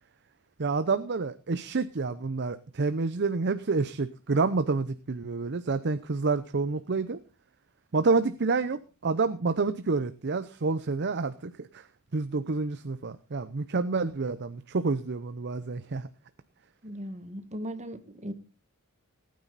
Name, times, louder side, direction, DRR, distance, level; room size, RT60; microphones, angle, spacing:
voice 1, 0.6-7.2 7.9-11.9 12.1-16.1, right 4 dB, 55° right, 0.7 m, -28 dB
voice 2, 16.8-18.3, equal, 35° right, 1.6 m, -38 dB
19.0 x 9.4 x 4.0 m
head